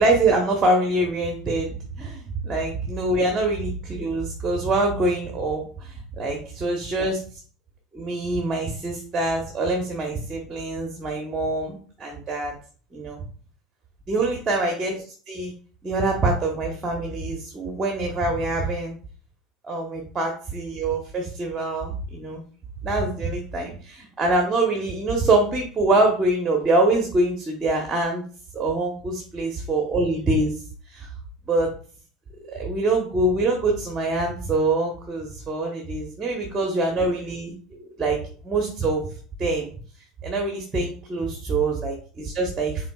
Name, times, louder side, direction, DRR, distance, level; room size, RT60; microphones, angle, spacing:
voice 1, 0.0-7.2 7.9-12.5 12.9-13.2 14.1-15.5 15.8-18.9 19.6-22.4 22.8-28.2 28.5-30.5 30.9-31.1 31.5-31.7 32.5-38.2 38.4-39.1 39.4-39.7 40.2-42.9, right 2 dB, 25° right, 1 dB, 1.1 m, -24 dB
5.7 x 3.9 x 2.4 m, 0.42 s
figure-of-eight pair, 70°, 0 cm